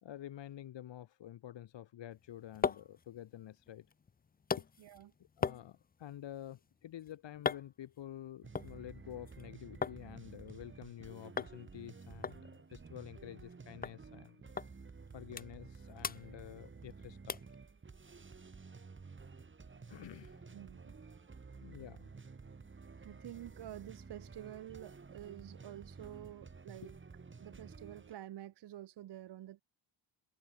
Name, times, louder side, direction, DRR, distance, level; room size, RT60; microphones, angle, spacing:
voice 1, 0.0-3.9 4.6-4.7 5.4-14.4 15.1-17.4 19.9-20.6 21.6-22.1, left 12 dB, 60° left, 0.8 m, -49 dB
sound 1, 2.1-10.0 10.3-11.0 11.4-11.6 11.8-11.9 12.2-13.5 13.8-14.0 14.6-14.7 15.1-15.7 16.0-16.9 17.3-17.6 18.1-18.2, left 5 dB, 20° left, 0.4 m, -41 dB
voice 2, 4.8-5.1 20.5-21.8 23.0-27.0 27.4-29.6, right 13 dB, 55° right, 0.6 m, -49 dB
sound 2, 8.4-28.2, right 4 dB, 25° right, 1.1 m, -53 dB
cardioid pair, 80°, 50 cm